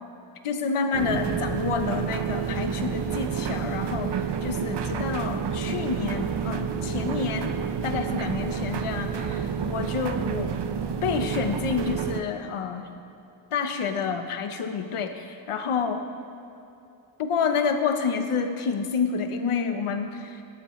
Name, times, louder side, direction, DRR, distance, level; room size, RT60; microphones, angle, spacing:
voice 1, 0.4-7.6 7.8-10.5 11.0-12.9 13.5-16.0 17.2-20.4, left 5 dB, 90° left, 6 dB, 1.1 m, -29 dB
sound 1, 0.9-12.2, right 7 dB, 55° right, 0.8 m, -29 dB
17.5 x 12.0 x 3.2 m, 2.8 s
cardioid pair, 80°, 49 cm